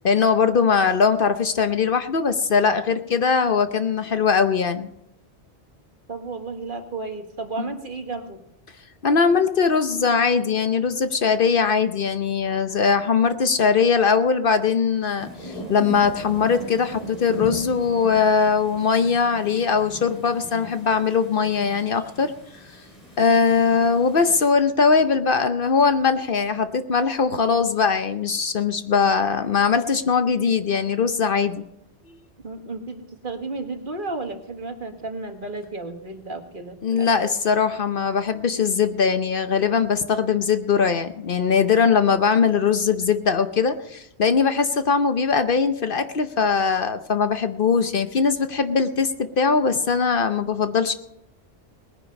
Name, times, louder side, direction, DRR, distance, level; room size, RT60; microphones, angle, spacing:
voice 1, 0.0-4.9 9.0-22.3 23.2-31.6 36.8-50.9, left 5 dB, 55° left, 10 dB, 0.9 m, -21 dB
voice 2, 6.1-8.4 32.4-37.1, right 3 dB, 50° right, 6 dB, 1.7 m, -33 dB
sound 1, 15.2-24.4, right 1 dB, 35° left, 3.7 m, -39 dB
19.5 x 10.0 x 5.3 m, 0.84 s
omnidirectional pair, 1.1 m